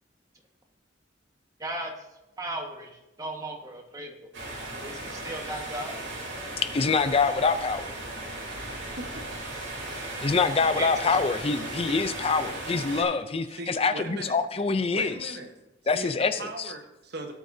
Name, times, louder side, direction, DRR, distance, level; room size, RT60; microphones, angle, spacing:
voice 1, 1.6-1.9 2.4-2.9 3.2-4.2 4.8-6.0 10.8-11.1, right 1 dB, 20° right, 2 dB, 1.5 m, -35 dB
sound 1, 4.3-13.0, right 2 dB, 80° right, 3.4 m, -37 dB
voice 2, 6.6-7.9 10.2-15.4 15.9-16.7, left 4 dB, 30° left, 10 dB, 0.5 m, -25 dB
voice 3, 8.6-9.3 11.9-12.0 12.9-13.2 13.5-14.4 14.9-15.5 15.9-16.1 16.4-17.3, right 2 dB, 60° right, 5 dB, 1.2 m, -39 dB
17.5 x 8.3 x 2.7 m, 0.91 s
head